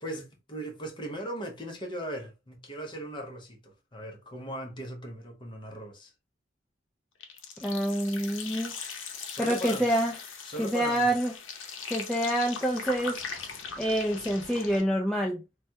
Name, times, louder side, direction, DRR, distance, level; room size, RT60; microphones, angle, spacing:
voice 1, 0.0-6.1 9.3-9.9 10.4-11.1, right 1 dB, 25° left, 0.7 m, -38 dB
sound 1, 7.2-14.8, left 5 dB, 75° left, 0.7 m, -40 dB
voice 2, 7.6-8.7 9.4-10.1 10.6-11.3 11.9-13.2 13.8-15.4, equal, 5° left, 0.3 m, -27 dB
3.2 x 2.2 x 2.7 m
head